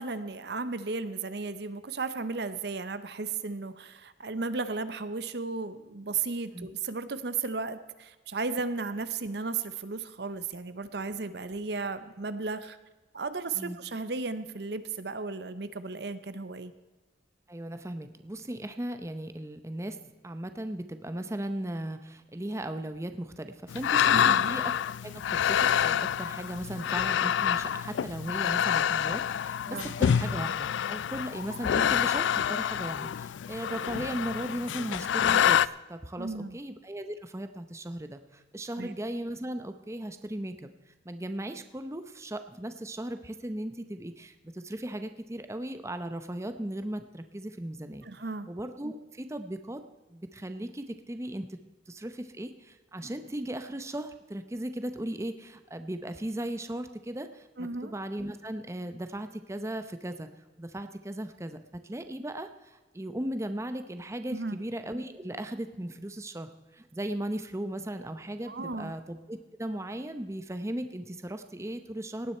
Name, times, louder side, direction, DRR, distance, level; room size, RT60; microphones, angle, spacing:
voice 1, 0.0-12.8 13.1-16.7 24.1-24.5 29.7-29.9 36.2-36.6 38.8-38.9 48.0-48.5 57.6-57.9 64.3-64.6 68.5-68.9, right 4 dB, 60° right, 13 dB, 0.8 m, -34 dB
voice 2, 17.5-24.7 25.0-48.1 48.5-49.8 50.1-51.5 51.9-60.3 60.6-61.6 61.8-72.4, right 1 dB, 15° right, 9 dB, 0.7 m, -37 dB
sound 1, 23.7-35.7, left 9 dB, 85° left, 0.3 m, -27 dB
18.0 x 9.6 x 4.4 m, 1.2 s
head